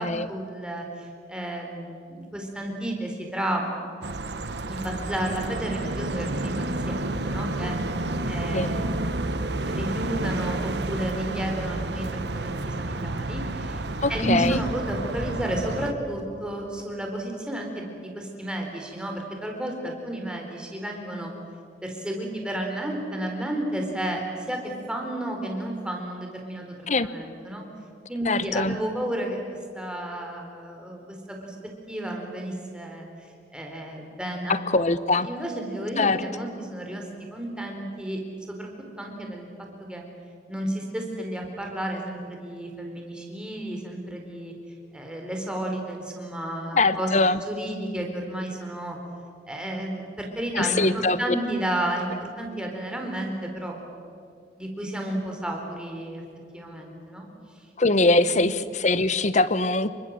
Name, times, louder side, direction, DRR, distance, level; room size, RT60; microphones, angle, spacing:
voice 1, 0.0-3.7 4.7-6.5 6.9-7.8 8.2-13.8 14.1-21.3 21.8-24.6 24.9-27.6 28.1-29.4 29.7-31.6 31.9-33.1 33.5-34.8 35.1-38.2 38.5-38.7 39.0-39.5 39.9-40.0 40.5-44.5 44.9-47.1 47.5-49.0 49.5-53.8 54.5-56.2 56.5-57.3 58.2-58.5, right 1 dB, 5° right, 1 dB, 4.3 m, -32 dB
sound 1, 4.0-15.9, right 2 dB, 65° right, 1.3 m, -30 dB
voice 2, 14.0-14.6 26.9-27.1 28.3-28.8 34.5-35.3 36.0-36.2 46.7-47.4 50.5-51.2 57.8-59.9, left 2 dB, 40° left, 14 dB, 1.0 m, -22 dB
27.5 x 24.0 x 7.6 m, 2.4 s
head